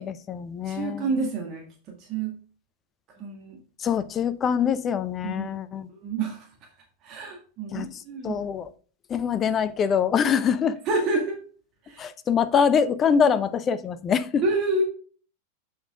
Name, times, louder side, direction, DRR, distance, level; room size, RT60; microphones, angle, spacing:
voice 1, 0.0-1.1 3.8-5.9 7.7-7.9 8.2-8.7 9.1-10.8 12.0-14.4, left 7 dB, 25° left, 0.6 m, -24 dB
voice 2, 0.7-1.6 2.1-2.3 3.2-3.6 5.2-5.6 6.0-6.5 7.0-8.5 10.9-11.4 11.9-12.1 14.4-14.8, right 3 dB, 35° right, 1.8 m, -28 dB
7.3 x 5.5 x 3.6 m
figure-of-eight pair, 90°, 0 cm